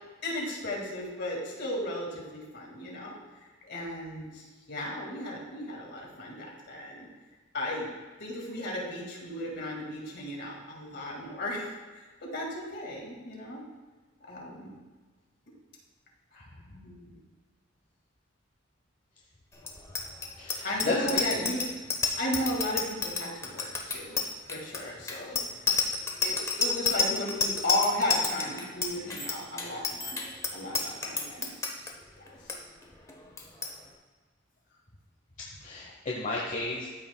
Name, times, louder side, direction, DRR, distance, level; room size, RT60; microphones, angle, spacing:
voice 1, 0.2-7.1 7.5-7.9 8.2-13.6 14.3-14.7 16.3-17.1 20.6-21.7 22.1-24.2 24.5-25.8 26.2-30.2 30.5-31.5 32.3-32.6, left 1 dB, 60° left, -2 dB, 2.0 m, -35 dB
Bicycle bell, 19.6-31.9 32.3-32.6 32.8-33.1 33.4-33.7, left 4 dB, 15° left, 0.8 m, -30 dB
voice 2, 20.4-21.4 35.6-36.9, left 2 dB, 40° left, -4 dB, 0.9 m, -32 dB
13.0 x 5.8 x 2.3 m, 1.4 s
head